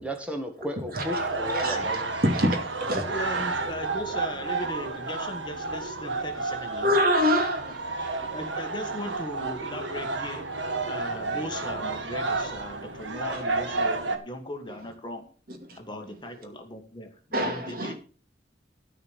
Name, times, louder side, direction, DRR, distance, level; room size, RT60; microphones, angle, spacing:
voice 1, 0.0-2.2 3.4-3.6, equal, 5° right, 1.7 m, -34 dB
sound 1, 0.9-14.2, right 3 dB, 85° right, 1.7 m, -31 dB
voice 2, 2.2-3.0 6.8-8.2 15.5-15.8 17.3-18.0, equal, 50° right, 2.4 m, -26 dB
voice 3, 3.1-7.0 7.6-7.7 8.3-10.5 10.9-15.3 15.8-17.9, equal, 25° left, 1.6 m, -38 dB
13.5 x 5.0 x 7.3 m
head